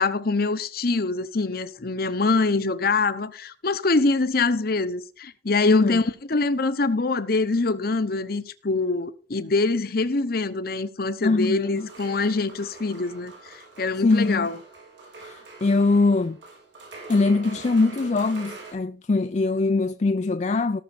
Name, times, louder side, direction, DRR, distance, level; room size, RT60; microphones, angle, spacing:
voice 1, 0.0-14.6, left 3 dB, 55° left, 0.9 m, -24 dB
voice 2, 5.7-6.0 11.2-11.9 14.0-14.5 15.2-16.4 17.1-20.8, left 3 dB, 40° left, 0.4 m, -22 dB
sound 1, 11.7-18.7, right 3 dB, 90° right, 4.4 m, -43 dB
18.0 x 6.4 x 4.2 m
head